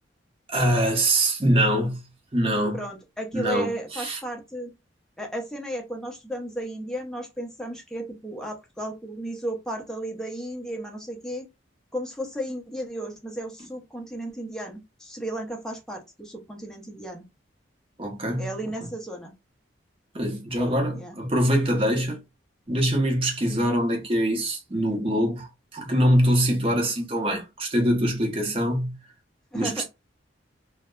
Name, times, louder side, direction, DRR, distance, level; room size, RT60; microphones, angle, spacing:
voice 1, 0.5-2.0 2.3-2.8 3.3-4.2 18.0-18.5 20.1-22.2 22.7-25.5 25.7-28.9 29.5-29.8, equal, 30° right, 0.8 m, -23 dB
voice 2, 2.7-4.7 5.2-11.5 11.9-17.2 18.4-19.3 20.9-21.2 29.5-29.8, right 1 dB, 5° left, 0.5 m, -34 dB
2.6 x 2.1 x 2.3 m
head